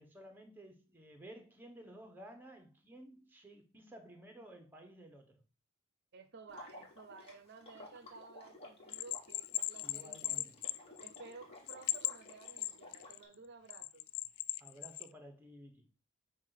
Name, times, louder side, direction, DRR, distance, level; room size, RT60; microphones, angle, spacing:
voice 1, 0.0-5.4 9.8-10.6 14.6-15.9, right 1 dB, 10° right, 1.1 m, -54 dB
voice 2, 6.1-10.5 11.0-14.1, right 4 dB, 55° right, 0.6 m, -54 dB
Water / Liquid, 6.5-13.3, left 2 dB, 30° left, 1.7 m, -55 dB
Bell, 8.9-11.3 11.7-13.2 13.7-15.1, left 16 dB, 80° left, 0.3 m, -38 dB
7.4 x 2.5 x 5.8 m
head